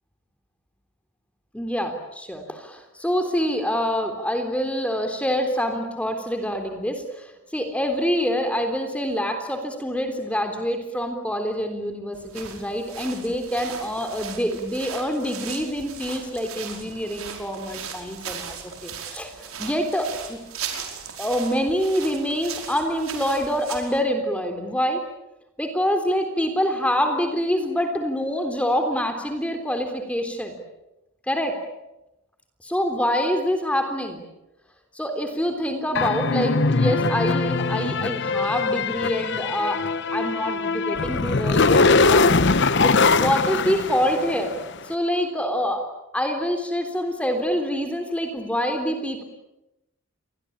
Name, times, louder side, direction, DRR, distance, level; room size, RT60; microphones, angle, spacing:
voice 1, 1.5-20.4 21.2-25.0 25.6-30.5 31.3-31.5 32.6-34.2 34.9-39.8 40.1-44.5 44.8-45.8 46.1-49.2, equal, 5° left, 5 dB, 3.5 m, -26 dB
sound 1, 12.1-24.0, right 7 dB, 70° right, 5.2 m, -38 dB
sound 2, 35.9-44.6, left 3 dB, 55° left, 0.9 m, -21 dB
29.5 x 23.0 x 8.7 m, 0.93 s
head